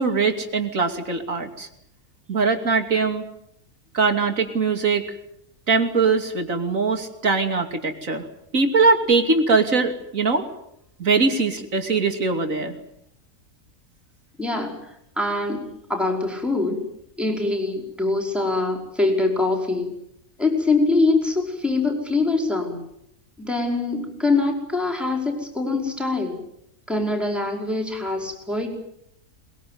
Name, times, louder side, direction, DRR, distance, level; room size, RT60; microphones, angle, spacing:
voice 1, 0.0-1.7 2.3-3.2 3.9-5.1 5.7-8.2 8.5-10.5 11.0-12.7, right 4 dB, 65° right, 5 dB, 3.1 m, -21 dB
voice 2, 14.4-14.8 15.2-15.6 15.9-16.9 17.2-19.9 20.4-22.8 23.4-26.4 26.9-28.8, left 3 dB, ahead, 3 dB, 5.3 m, -23 dB
22.5 x 21.5 x 9.5 m, 0.77 s
omnidirectional pair, 1.5 m